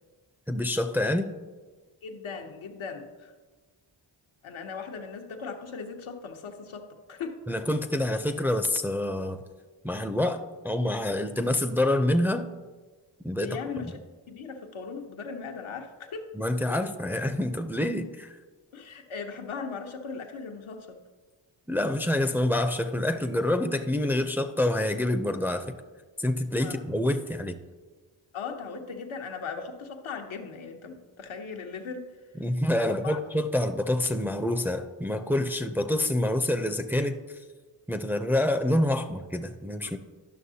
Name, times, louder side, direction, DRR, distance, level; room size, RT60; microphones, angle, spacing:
voice 1, 0.5-1.3 7.5-9.4 9.8-12.5 13.2-13.6 16.3-18.4 21.7-25.8 26.2-27.6 32.4-37.2 37.9-40.0, left 1 dB, 5° right, 6 dB, 0.4 m, -27 dB
voice 2, 2.0-3.3 4.4-7.4 13.4-14.0 14.3-16.3 16.7-16.8 18.7-21.0 26.6-26.8 28.3-32.2 32.7-33.2 39.8-40.0, left 5 dB, 85° left, 3 dB, 0.9 m, -38 dB
11.0 x 6.1 x 2.7 m, 1.3 s
cardioid pair, 55°, 47 cm